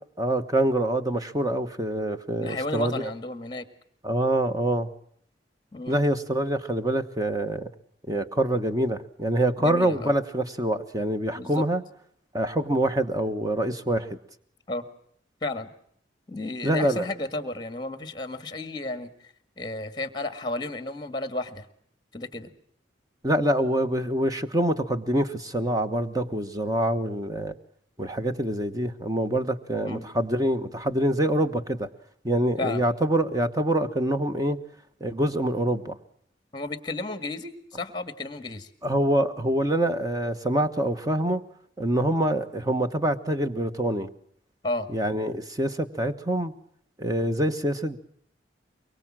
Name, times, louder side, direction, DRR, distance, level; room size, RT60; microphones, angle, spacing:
voice 1, 0.2-3.1 4.0-4.9 5.9-7.7 8.1-11.8 12.3-14.2 16.6-17.1 23.2-27.5 28.0-31.9 32.2-34.6 35.0-36.0 38.8-41.4 41.8-44.1 44.9-46.5 47.0-48.0, right 1 dB, 20° right, 8 dB, 1.2 m, -25 dB
voice 2, 2.4-3.7 5.7-6.0 9.6-10.1 11.4-11.6 14.7-14.8 15.4-15.7 16.3-19.1 19.6-21.7 22.1-22.5 29.8-30.1 32.6-32.8 36.5-38.7 44.6-44.9, left 2 dB, 25° left, 10 dB, 1.8 m, -32 dB
23.5 x 23.0 x 7.5 m, 0.66 s
head